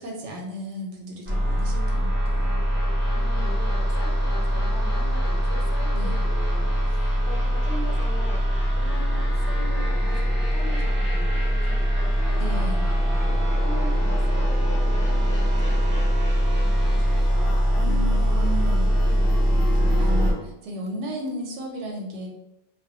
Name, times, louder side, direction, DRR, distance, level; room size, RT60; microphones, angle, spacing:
voice 1, 0.0-2.6 5.9-6.2 11.7-11.8 12.4-12.9 17.8-18.9 19.9-22.3, equal, 85° right, 0 dB, 0.9 m, -34 dB
sound 1, 1.3-20.3, equal, 10° right, 0.6 m, -22 dB
voice 2, 3.1-12.7 13.2-16.2 16.6-19.4 19.7-20.0, left 2 dB, 60° left, 1 dB, 0.6 m, -41 dB
2.1 x 2.1 x 2.7 m, 0.85 s
omnidirectional pair, 1.2 m